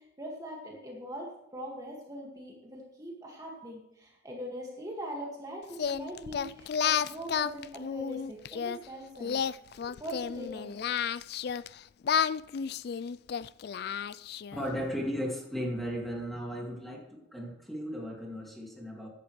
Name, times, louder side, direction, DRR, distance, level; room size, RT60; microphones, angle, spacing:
voice 1, 0.0-9.4 9.8-10.8, equal, 20° right, -2 dB, 2.0 m, -42 dB
Singing, 5.7-8.8 9.2-11.7 12.0-14.6, left 7 dB, 55° left, 0.3 m, -31 dB
voice 2, 14.5-19.1, equal, ahead, -1 dB, 2.3 m, -36 dB
15.0 x 11.0 x 3.3 m, 0.84 s
head